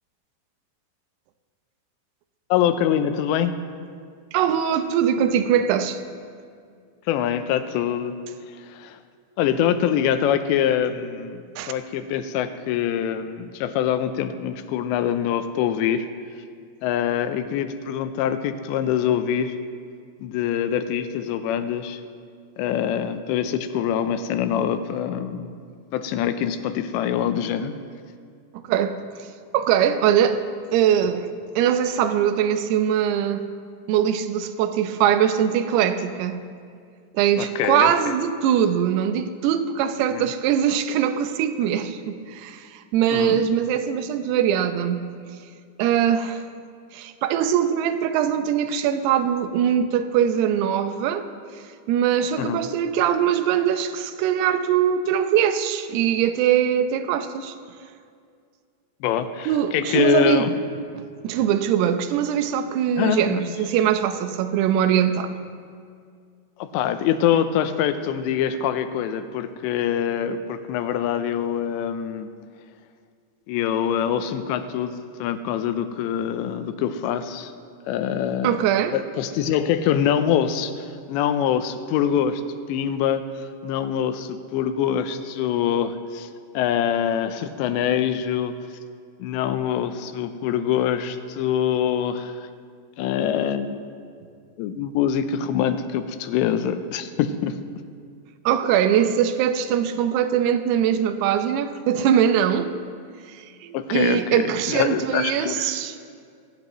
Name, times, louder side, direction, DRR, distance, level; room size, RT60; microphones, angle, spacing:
voice 1, 2.5-3.5 7.1-8.1 8.6-9.0 9.4-16.1 16.8-19.6 20.2-22.0 22.6-25.5 25.9-27.7 37.4-38.1 40.1-40.3 43.1-43.4 52.4-52.6 59.0-60.5 63.0-63.4 66.6-72.3 73.5-77.5 77.9-78.6 78.9-82.4 82.7-86.3 86.5-88.5 89.2-92.5 93.0-93.8 94.6-97.6 103.7-105.8, left 9 dB, 85° left, 10 dB, 3.0 m, -24 dB
voice 2, 4.3-6.0 11.6-11.7 28.7-29.0 29.5-30.4 30.7-31.3 31.6-33.5 33.9-36.4 37.1-45.1 45.8-46.4 46.9-51.3 51.9-57.5 59.5-60.5 61.2-65.3 78.4-79.0 98.5-102.7 103.3-106.0, right 9 dB, 75° right, 8 dB, 2.7 m, -22 dB
24.0 x 15.5 x 3.1 m, 2.2 s
omnidirectional pair, 5.1 m